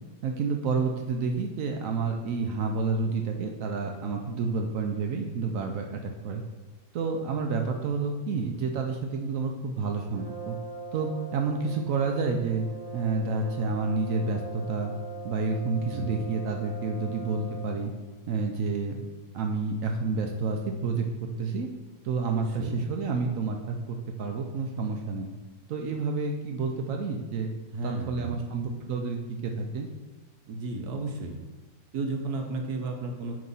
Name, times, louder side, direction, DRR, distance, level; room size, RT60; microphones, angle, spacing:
voice 1, 0.2-6.4 6.9-10.6 10.9-12.7 12.9-14.9 15.2-17.9 18.3-19.0 19.3-21.7 22.0-25.3 25.7-27.5 27.8-29.9, right 4 dB, 85° right, 3 dB, 0.7 m, -29 dB
Brass instrument, 10.1-17.9, right 4 dB, 25° right, 0.6 m, -41 dB
voice 2, 15.9-16.3 22.2-22.8 27.7-28.4 30.5-31.4 31.9-33.4, right 3 dB, 65° right, 3 dB, 1.1 m, -34 dB
7.7 x 2.9 x 5.4 m, 1.3 s
omnidirectional pair, 2.1 m